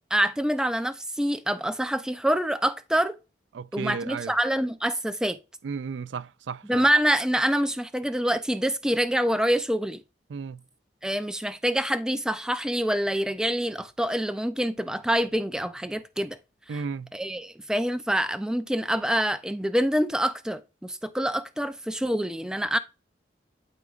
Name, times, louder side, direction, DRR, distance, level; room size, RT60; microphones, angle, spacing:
voice 1, 0.1-3.2 3.7-5.4 6.7-10.0 11.0-16.4 16.7-16.8 17.1-22.8, equal, 5° right, 0.4 m, -26 dB
voice 2, 3.5-4.3 5.6-6.9 10.3-10.6 16.7-17.1, right 5 dB, 85° right, 0.4 m, -34 dB
12.0 x 5.0 x 2.4 m
head